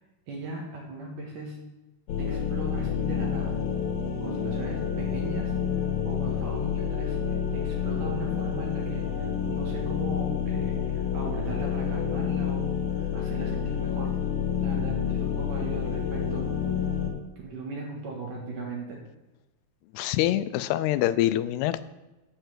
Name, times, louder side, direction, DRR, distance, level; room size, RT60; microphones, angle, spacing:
voice 1, 0.3-1.6 2.2-3.5 4.2-5.5 6.0-14.1 14.6-16.5 17.4-19.0, right 2 dB, 65° right, -1 dB, 2.6 m, -38 dB
sound 1, 2.1-17.1, left 8 dB, 70° left, 3.2 m, -29 dB
voice 2, 19.9-21.9, left 14 dB, 90° left, 14 dB, 2.6 m, -25 dB
7.7 x 6.7 x 7.9 m, 1.1 s
omnidirectional pair, 4.6 m